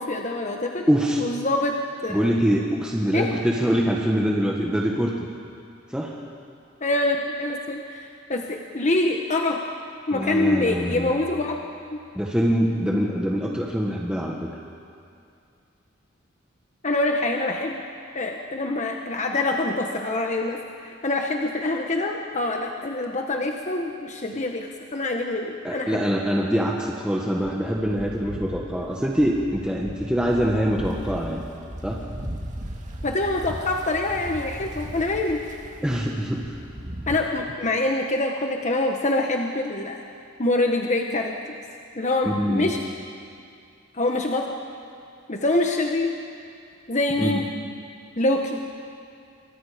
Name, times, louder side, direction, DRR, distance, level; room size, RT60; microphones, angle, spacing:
voice 1, 0.0-0.9 1.2-1.8 2.0-2.3 3.1-3.3 6.8-9.6 10.1-11.6 11.9-12.0 16.8-17.8 18.1-26.0 33.0-35.4 37.1-40.0 40.4-41.4 42.0-42.8 43.9-44.6 45.3-46.1 46.9-47.5 48.2-48.6, left 2 dB, 35° left, 2 dB, 1.3 m, -25 dB
voice 2, 0.9-1.2 2.1-5.3 5.9-6.1 10.1-11.1 12.2-14.4 25.6-31.4 31.8-32.0 35.8-36.6 42.3-42.7 47.2-47.4, equal, 5° right, -2 dB, 1.6 m, -24 dB
sound 1, 27.4-37.2, equal, 35° right, 2.0 m, -37 dB
28.5 x 25.0 x 5.2 m, 2.5 s
head